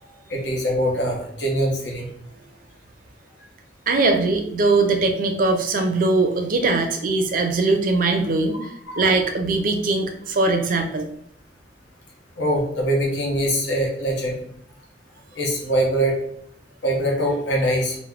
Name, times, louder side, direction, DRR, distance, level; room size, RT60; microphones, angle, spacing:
voice 1, 0.3-2.1 8.6-9.1 12.4-14.4 15.3-16.2 16.8-18.0, right 1 dB, 85° left, -1 dB, 0.7 m, -23 dB
voice 2, 3.9-8.7 9.0-11.1, right 3 dB, 50° right, 5 dB, 0.4 m, -21 dB
2.3 x 2.0 x 3.4 m, 0.69 s
head